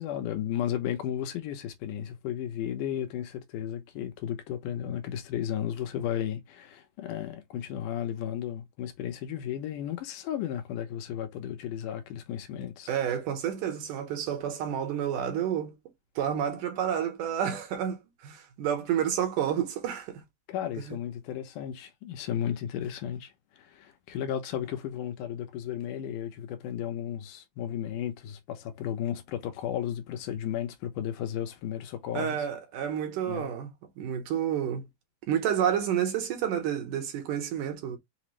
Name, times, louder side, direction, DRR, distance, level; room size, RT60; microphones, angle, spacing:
voice 1, 0.0-12.9 20.5-23.3 23.6-32.4 33.3-33.5, left 10 dB, 90° left, 2.3 m, -34 dB
voice 2, 12.9-15.7 16.2-20.2 20.9-21.0 32.1-33.7 34.0-34.9 35.3-38.0, right 9 dB, 80° right, 2.6 m, -30 dB
5.8 x 2.0 x 3.0 m
omnidirectional pair, 3.6 m